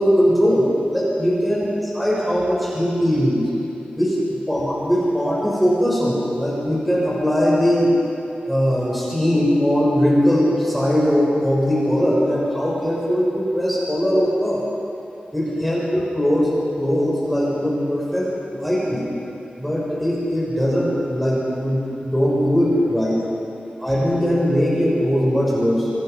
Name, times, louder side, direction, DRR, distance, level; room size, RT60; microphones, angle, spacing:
voice 1, 0.0-0.7 0.9-1.6 1.9-3.4 4.0-7.9 8.4-14.6 15.3-19.0 19.6-23.2 23.8-25.9, equal, ahead, -6 dB, 6.4 m, -20 dB
26.0 x 21.0 x 5.4 m, 2.8 s
wide cardioid pair, 95°, 3 cm